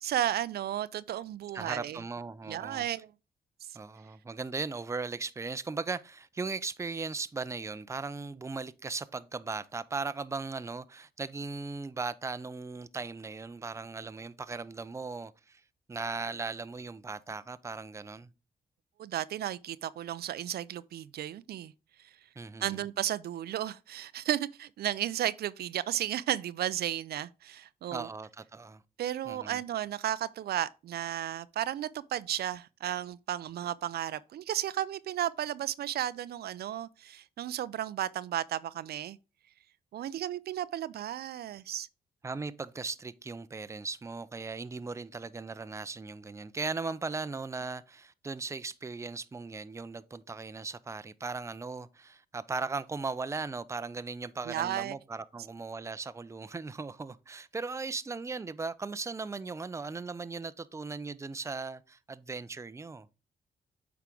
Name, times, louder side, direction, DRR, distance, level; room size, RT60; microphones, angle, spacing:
voice 1, 0.0-2.0 2.5-3.1 19.0-21.7 22.6-28.1 29.0-39.2 39.9-41.9 54.5-55.0, right 12 dB, 75° right, 0.4 m, -34 dB
voice 2, 1.5-2.9 3.7-15.6 15.9-18.3 22.4-22.8 27.9-28.8 29.3-29.6 42.2-63.1, right 4 dB, 15° right, 0.5 m, -38 dB
8.2 x 4.7 x 3.7 m
cardioid pair, 75°, 17 cm